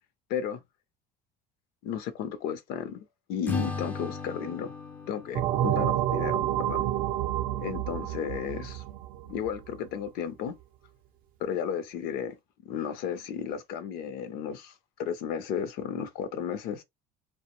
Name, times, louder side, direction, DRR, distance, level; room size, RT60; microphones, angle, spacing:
voice 1, 0.3-0.6 1.8-4.7 5.1-6.9 7.6-8.8 9.3-10.6 11.4-12.4 12.6-16.8, left 8 dB, 60° left, 0.6 m, -34 dB
Acoustic guitar / Strum, 3.5-6.7, left 4 dB, 10° left, 0.3 m, -37 dB
sound 1, 5.3-9.7, right 13 dB, 55° right, 0.4 m, -29 dB
2.4 x 2.1 x 2.9 m
cardioid pair, 165°, 18 cm